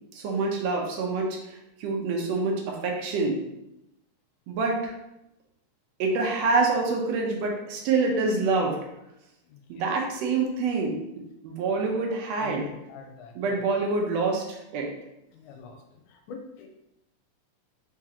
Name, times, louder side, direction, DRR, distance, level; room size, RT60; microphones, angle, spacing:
voice 1, 0.1-3.4 4.5-4.9 6.0-8.8 9.7-11.0 11.4-12.7 13.4-14.9, right 3 dB, 70° right, 0 dB, 1.7 m, -26 dB
voice 2, 12.4-13.6 15.3-15.8 16.3-16.7, left 6 dB, 90° left, 3 dB, 2.1 m, -43 dB
4.9 x 3.6 x 2.9 m, 0.87 s
omnidirectional pair, 3.5 m